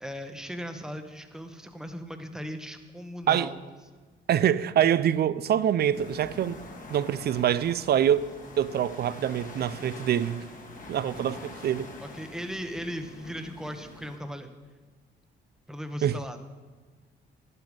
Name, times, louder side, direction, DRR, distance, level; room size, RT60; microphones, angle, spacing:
voice 1, 0.0-3.7 12.0-14.6 15.7-16.4, equal, 5° right, 1.0 m, -38 dB
voice 2, 4.3-6.6 6.9-8.3 8.6-10.5 10.9-11.9 16.0-16.2, right 10 dB, 55° right, 0.5 m, -25 dB
sound 1, 5.9-14.2, left 2 dB, 40° left, 1.6 m, -45 dB
11.0 x 8.1 x 5.3 m
cardioid pair, 90°, 20 cm